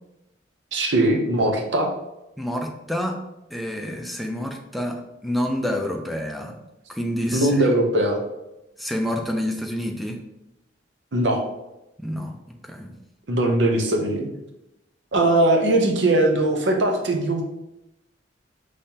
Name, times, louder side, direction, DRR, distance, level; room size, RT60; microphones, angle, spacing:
voice 1, 0.7-1.9 7.3-8.2 11.1-11.4 13.3-14.2 15.1-17.4, right 1 dB, 70° right, 2 dB, 0.8 m, -20 dB
voice 2, 2.4-3.2 3.5-6.6 6.9-7.6 8.8-10.2 12.0-12.9, equal, ahead, 2 dB, 0.5 m, -28 dB
5.4 x 3.2 x 2.8 m, 0.93 s
head